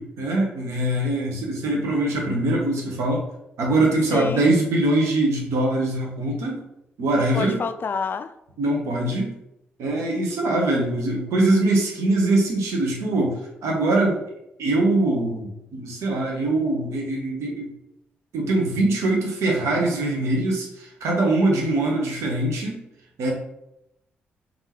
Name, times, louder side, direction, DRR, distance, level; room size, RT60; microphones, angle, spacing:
voice 1, 0.0-3.3 3.6-6.6 7.0-7.6 8.6-9.3 9.8-14.2 14.6-17.7 18.3-22.8 23.2-23.3, right 2 dB, 70° right, 0 dB, 1.0 m, -22 dB
voice 2, 4.1-4.5 7.1-8.3, left 5 dB, 45° left, 11 dB, 0.3 m, -28 dB
3.7 x 3.7 x 3.0 m, 0.84 s
hypercardioid pair, 45°, 5 cm